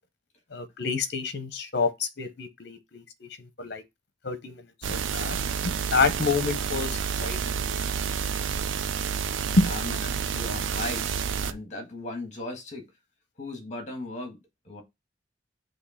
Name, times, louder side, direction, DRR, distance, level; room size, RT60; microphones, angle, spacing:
voice 1, 0.5-3.8 4.2-5.4 5.6-7.7 9.6-9.7, left 3 dB, 60° left, 0.8 m, -28 dB
sound 1, 4.8-11.5, right 7 dB, 90° right, 0.5 m, -29 dB
voice 2, 9.4-12.9 13.4-14.4 14.6-14.8, left 2 dB, 40° left, 1.6 m, -37 dB
6.4 x 2.8 x 5.6 m
head